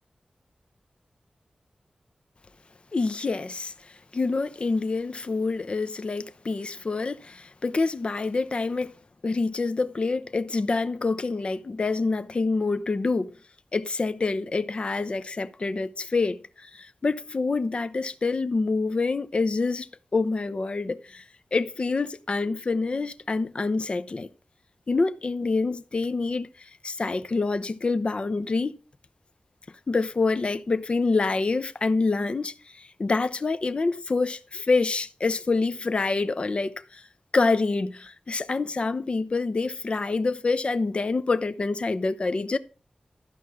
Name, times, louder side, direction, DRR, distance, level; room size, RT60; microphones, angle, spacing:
voice 1, 2.9-3.7 4.1-9.0 9.2-13.3 13.7-21.2 21.5-24.3 24.9-28.7 29.9-37.0 37.3-42.6, left 3 dB, 50° left, 0.8 m, -26 dB
13.5 x 5.4 x 6.3 m
wide cardioid pair, 95°, 2 cm